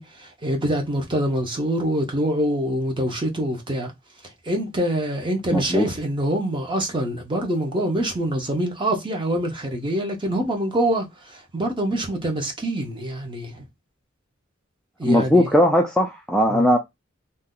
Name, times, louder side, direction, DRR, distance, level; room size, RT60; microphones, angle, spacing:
voice 1, 0.0-3.9 4.4-13.6 15.0-15.5 16.5-16.7, right 1 dB, 25° right, 0.8 m, -25 dB
voice 2, 5.5-5.9 15.0-16.8, equal, 5° left, 0.3 m, -18 dB
2.7 x 2.1 x 3.7 m
head